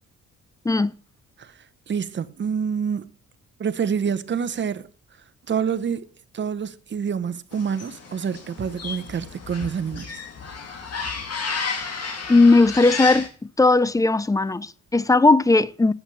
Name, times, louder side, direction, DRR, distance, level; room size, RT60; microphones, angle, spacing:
voice 1, 1.4-3.1 3.6-4.9 5.5-10.2, right 7 dB, 40° right, 0.9 m, -27 dB
sound 1, 7.5-13.3, left 5 dB, 55° left, 2.3 m, -32 dB
voice 2, 11.8-15.9, left 3 dB, 10° left, 0.4 m, -18 dB
8.6 x 6.1 x 6.8 m
cardioid pair, 90°, 30 cm